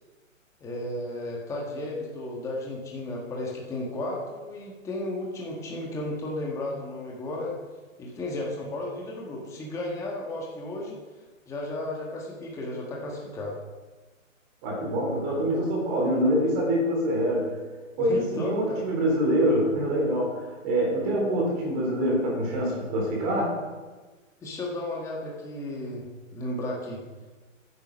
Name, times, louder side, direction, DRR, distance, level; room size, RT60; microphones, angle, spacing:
voice 1, 0.6-7.5 8.0-11.0 11.5-13.6 18.0-18.8 24.4-26.1 26.3-27.0, left 1 dB, 5° left, -2 dB, 1.4 m, -34 dB
voice 2, 14.6-17.5 18.0-23.5, equal, 25° right, -2 dB, 3.9 m, -25 dB
13.0 x 9.7 x 5.4 m, 1.3 s
hypercardioid pair, 155°, 40 cm